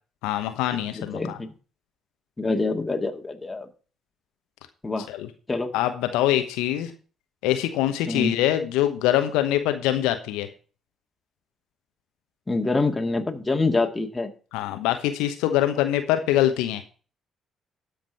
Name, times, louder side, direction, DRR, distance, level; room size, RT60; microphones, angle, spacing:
voice 1, 0.2-1.4 5.1-5.3 5.7-6.9 7.4-10.5 14.5-16.8, left 13 dB, 75° left, 8 dB, 1.0 m, -24 dB
voice 2, 0.9-1.5 2.4-3.7 4.8-5.1 5.5-5.7 8.1-8.4 12.5-14.3, left 3 dB, 20° left, 3 dB, 2.0 m, -26 dB
12.5 x 5.2 x 6.3 m, 0.37 s
hypercardioid pair, 45°, 0 cm